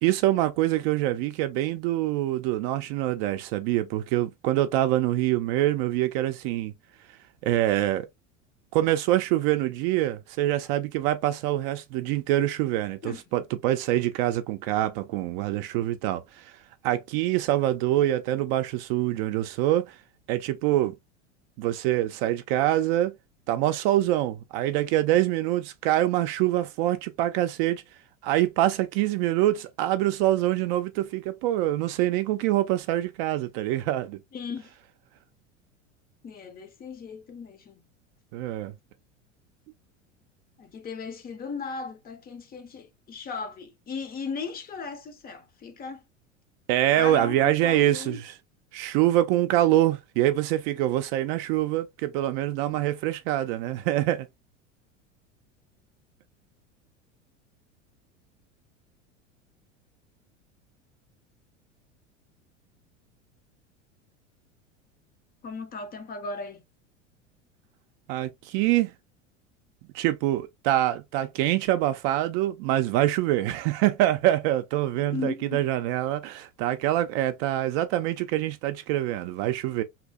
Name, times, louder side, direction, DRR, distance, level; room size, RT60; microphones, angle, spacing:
voice 1, 0.0-6.7 7.4-8.1 8.7-16.5 16.8-20.0 20.3-21.0 21.6-23.1 23.5-27.8 28.2-34.2 38.3-38.7 46.7-48.3 48.7-54.3 68.1-68.9 69.9-79.8, right 14 dB, 50° right, 0.5 m, -25 dB
voice 2, 34.3-34.7 36.2-37.8 40.6-46.0 47.0-48.2 65.4-66.6 75.0-75.7, left 5 dB, 25° left, 0.6 m, -37 dB
2.8 x 2.7 x 2.2 m
hypercardioid pair, 85°, 38 cm